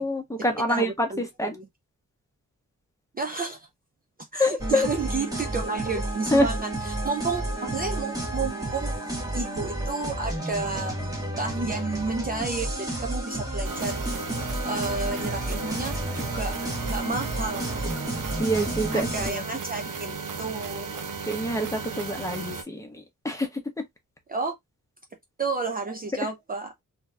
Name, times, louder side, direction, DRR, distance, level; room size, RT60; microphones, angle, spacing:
voice 1, 0.0-1.6 4.4-4.9 6.3-6.5 18.4-19.4 21.3-23.6, equal, 10° left, 1.0 m, -26 dB
voice 2, 0.7-1.7 3.1-3.7 4.3-9.0 9.3-11.0 11.4-14.4 14.6-16.6 16.9-18.0 18.9-21.0 24.3-24.5 25.4-26.7, right 4 dB, 30° right, 0.5 m, -31 dB
sound 1, 4.6-19.3, right 1 dB, 10° right, 1.2 m, -31 dB
sound 2, 13.6-22.6, right 5 dB, 75° right, 0.8 m, -35 dB
3.7 x 2.8 x 2.3 m
wide cardioid pair, 165°, 32 cm